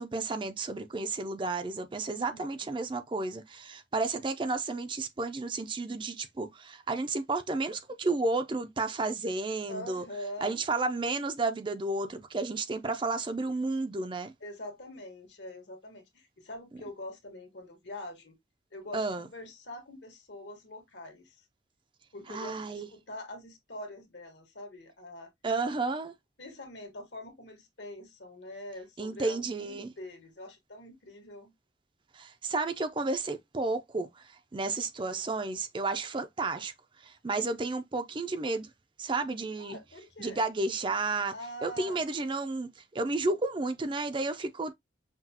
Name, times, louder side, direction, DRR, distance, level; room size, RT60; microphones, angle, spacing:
voice 1, 0.0-10.0 10.4-14.3 18.9-19.3 22.3-22.9 25.4-26.1 29.0-29.9 32.1-36.7 37.0-38.7 39.0-39.8 40.2-41.3 41.6-44.7, right 3 dB, 25° right, 0.4 m, -32 dB
voice 2, 2.0-2.7 9.7-10.6 14.4-18.4 18.7-21.4 22.1-25.3 26.4-31.5 35.1-35.2 39.6-40.4 41.3-42.1, left 1 dB, 75° left, 1.5 m, -44 dB
5.9 x 2.3 x 2.8 m
head